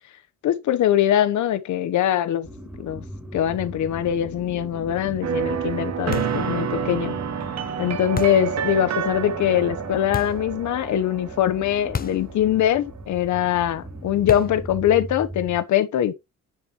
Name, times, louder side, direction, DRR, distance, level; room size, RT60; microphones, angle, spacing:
voice 1, 0.4-2.5 2.8-3.1 3.3-7.1 7.8-16.1, left 11 dB, 75° left, 1.2 m, -22 dB
sound 1, 2.4-15.6, right 1 dB, 5° right, 2.8 m, -39 dB
sound 2, 5.2-12.8, right 7 dB, 60° right, 1.4 m, -29 dB
sound 3, 6.1-6.5 8.2-8.5 10.1-10.5 11.9-12.3 12.6-12.7 14.3-14.7, left 6 dB, 30° left, 0.8 m, -31 dB
10.5 x 7.3 x 3.2 m
cardioid pair, 90°, 30 cm